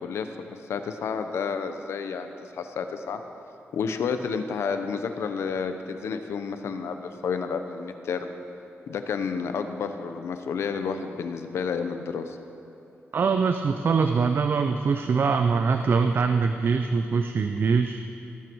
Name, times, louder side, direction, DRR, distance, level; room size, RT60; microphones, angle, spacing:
voice 1, 0.0-3.2 3.7-8.3 8.9-12.4, left 5 dB, 85° left, 8 dB, 0.9 m, -30 dB
voice 2, 13.1-18.0, right 5 dB, 55° right, 7 dB, 0.6 m, -23 dB
18.5 x 11.5 x 4.7 m, 2.8 s
cardioid pair, 90°, 4 cm